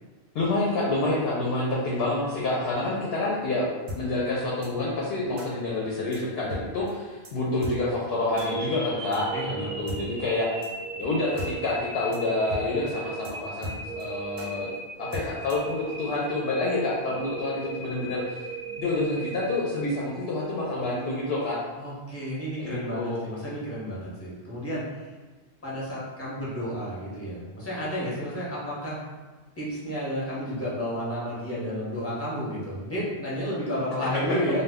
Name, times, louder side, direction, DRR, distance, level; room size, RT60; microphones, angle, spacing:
voice 1, 0.3-10.7 11.0-14.7 15.0-18.5 18.8-21.6 22.6-23.2, left 2 dB, 70° left, -4 dB, 0.7 m, -28 dB
sound 1, 3.9-4.0 4.6-4.7 5.4-5.5 6.1-6.2 6.5-6.6 6.9-7.0 7.2-7.3 7.6-7.8 8.4-8.5 9.1-9.2 9.9-10.0 10.6-10.7 11.0-11.1 11.4-11.5 11.8-11.9 12.1-12.2 12.5-12.6 12.9-13.0 13.2-13.3 13.6-14.0 14.4-14.5 15.1-15.7, left 1 dB, 60° right, 0.8 m, -36 dB
sound 2, 8.3-20.4, right 4 dB, 85° right, 1.0 m, -37 dB
voice 2, 9.3-9.7 21.8-25.1 25.6-29.0 29.6-34.6, equal, 15° left, -8 dB, 0.7 m, -31 dB
2.2 x 2.1 x 3.5 m, 1.3 s
omnidirectional pair, 1.1 m